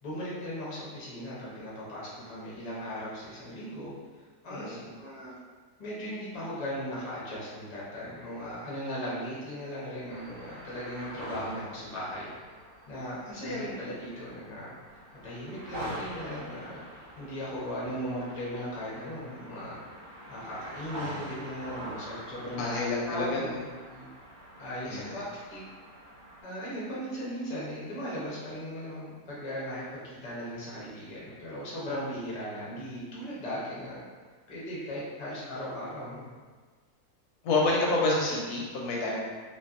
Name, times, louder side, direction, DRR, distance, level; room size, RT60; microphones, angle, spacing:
voice 1, 0.0-3.9 4.2-5.3 5.8-12.3 12.9-14.7 15.2-16.8 17.2-19.8 20.3-22.8 23.1-23.5 23.9-24.1 24.6-25.6 26.4-34.0 34.5-36.3, equal, 40° left, -7 dB, 0.6 m, -37 dB
voice 2, 4.5-4.9 13.4-13.8 22.4-23.6 24.9-25.2 37.4-39.2, left 2 dB, 90° left, -3 dB, 1.1 m, -29 dB
sound 1, 10.1-26.4, right 1 dB, 85° right, 1.1 m, -45 dB
2.6 x 2.5 x 2.4 m, 1.5 s
omnidirectional pair, 1.6 m